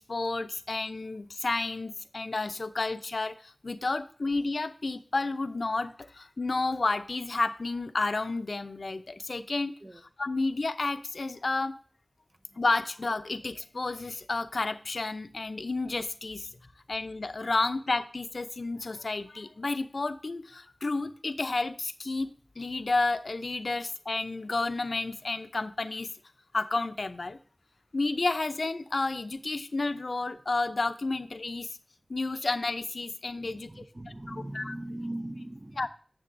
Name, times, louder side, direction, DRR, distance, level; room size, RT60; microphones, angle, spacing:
voice 1, 0.0-9.7 10.2-11.7 12.6-16.5 16.9-22.3 22.6-26.1 26.5-27.4 27.9-31.7 32.1-33.8 34.3-34.7 35.8-35.9, left 3 dB, 80° left, 10 dB, 0.6 m, -31 dB
voice 2, 33.4-35.9, right 1 dB, 45° right, 9 dB, 0.7 m, -40 dB
9.8 x 7.8 x 2.6 m, 0.44 s
wide cardioid pair, 45°, 0 cm